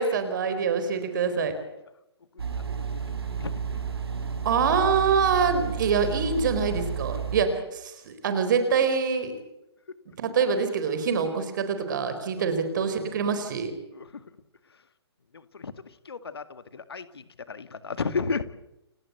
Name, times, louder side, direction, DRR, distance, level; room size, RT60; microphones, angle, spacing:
voice 1, 0.0-1.6 4.4-9.3 10.2-13.7, right 5 dB, 45° right, 9 dB, 4.3 m, -25 dB
sound 1, 2.4-7.4, right 6 dB, 65° right, 4.8 m, -31 dB
voice 2, 3.1-3.5 5.8-5.9 12.4-12.5 13.9-14.2 15.3-15.7 16.1-18.4, left 5 dB, 65° left, 12 dB, 2.1 m, -33 dB
29.5 x 18.0 x 8.1 m, 0.87 s
figure-of-eight pair, 125°, 14 cm